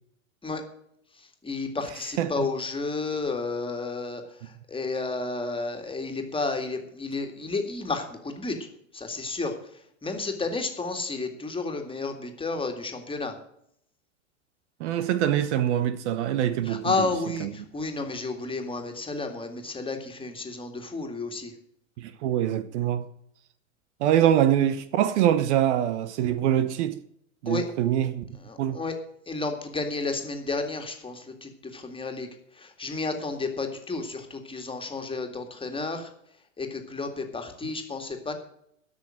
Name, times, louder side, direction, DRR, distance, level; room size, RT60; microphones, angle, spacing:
voice 1, 1.2-8.6 8.9-13.3 16.6-21.5 27.5-27.7 28.3-29.0 29.3-32.3 32.5-36.1 36.6-38.3, left 3 dB, 15° left, 2.1 m, -32 dB
voice 2, 14.8-17.1 17.4-17.5 22.0-23.1 24.0-26.9 27.4-28.2 28.6-28.8, right 11 dB, 60° right, 0.9 m, -24 dB
12.5 x 6.4 x 7.6 m
hypercardioid pair, 95°, 40 cm